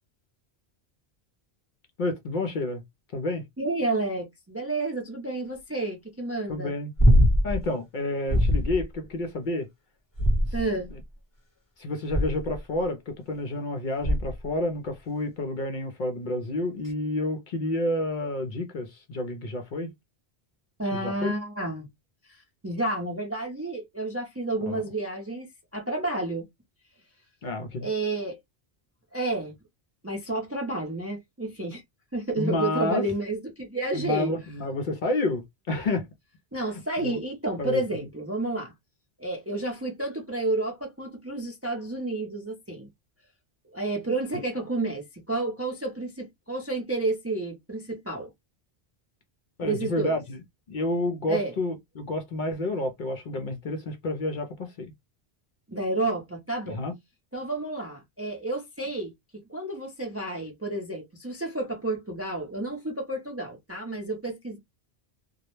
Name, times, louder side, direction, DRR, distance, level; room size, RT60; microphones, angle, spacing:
voice 1, 2.0-2.8 3.1-3.4 6.5-6.9 7.4-9.7 11.8-19.9 20.9-21.3 24.6-24.8 27.4-27.9 32.4-33.1 33.9-36.0 37.0-37.2 37.6-37.8 49.6-50.2 50.7-54.9 56.7-56.9, left 2 dB, 60° left, 0.6 m, -29 dB
voice 2, 3.6-6.8 10.5-10.9 20.8-21.9 22.3-25.5 25.7-26.5 27.8-28.4 29.1-29.5 30.0-31.8 32.1-34.3 36.5-38.7 39.2-42.9 43.7-48.3 49.6-50.2 51.3-51.5 55.7-56.8 57.3-64.6, right 2 dB, 20° right, 0.4 m, -30 dB
sound 1, 7.0-7.6 8.3-8.8 10.1-10.9 12.1-12.6 14.0-14.5 16.8-16.9, equal, 20° left, 0.8 m, -21 dB
2.2 x 2.0 x 2.9 m
omnidirectional pair, 1.1 m